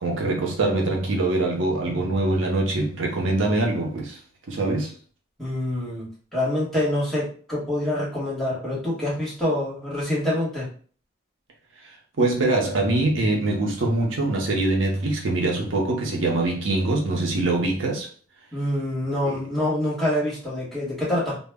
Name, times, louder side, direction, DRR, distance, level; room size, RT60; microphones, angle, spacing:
voice 1, 0.0-4.2 4.5-4.9 12.2-18.1 19.2-19.4, right 2 dB, 80° right, 0.6 m, -23 dB
voice 2, 5.4-6.1 6.3-10.7 18.5-21.4, left 1 dB, ahead, 1.1 m, -26 dB
2.1 x 2.0 x 3.4 m
head